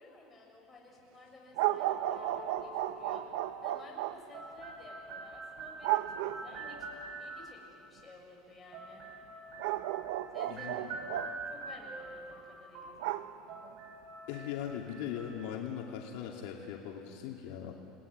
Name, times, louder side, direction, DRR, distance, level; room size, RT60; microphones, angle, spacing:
voice 1, 0.0-6.9 7.2-9.1 10.3-10.7 11.1-13.3, left 2 dB, 15° left, -2 dB, 6.7 m, -54 dB
sound 1, 1.6-4.2 5.8-6.7 9.6-11.4 13.0-13.7, right 14 dB, 85° right, 0.9 m, -34 dB
sound 2, 1.9-7.7 8.7-15.6, right 3 dB, 60° right, 7.0 m, -45 dB
voice 2, 10.5-11.0 14.3-17.7, left 9 dB, 75° left, 0 dB, 2.8 m, -40 dB
29.5 x 20.0 x 9.6 m, 2.8 s
cardioid pair, 140°, 0 cm